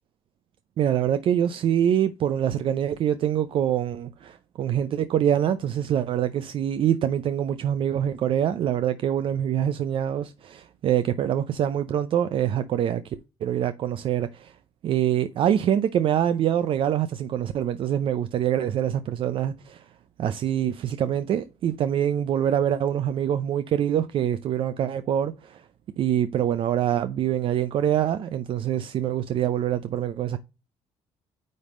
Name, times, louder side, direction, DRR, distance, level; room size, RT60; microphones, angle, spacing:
voice 1, 0.8-13.2 13.4-14.5 14.8-19.9 20.2-25.6 26.0-30.4, right 10 dB, 50° right, 0.5 m, -25 dB
9.4 x 3.6 x 3.7 m
cardioid pair, 135°, 11 cm